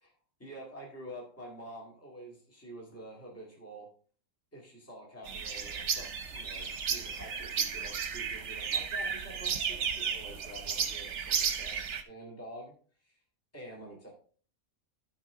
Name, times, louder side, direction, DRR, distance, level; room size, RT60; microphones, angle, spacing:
voice 1, 0.4-3.9 4.5-12.7 13.0-13.1 13.5-14.1, equal, 10° left, -2 dB, 2.1 m, -48 dB
sound 1, 5.2-12.0, right 6 dB, 60° right, 1.1 m, -34 dB
12.0 x 5.0 x 3.7 m, 0.42 s
omnidirectional pair, 1.4 m